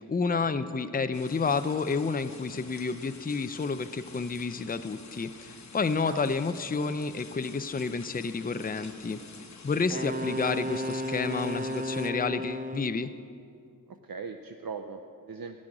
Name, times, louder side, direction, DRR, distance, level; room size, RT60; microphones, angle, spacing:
voice 1, 0.1-9.2 9.6-13.1, left 4 dB, 25° left, 11 dB, 0.5 m, -30 dB
sound 1, 1.1-12.1, left 4 dB, 55° left, 1.0 m, -49 dB
Wind instrument woodwind instrument, 9.9-13.1, equal, 25° right, 0.5 m, -33 dB
voice 2, 13.9-15.6, right 5 dB, 75° right, 6 dB, 0.6 m, -40 dB
15.5 x 6.3 x 10.0 m, 2.6 s
wide cardioid pair, 50°, 35 cm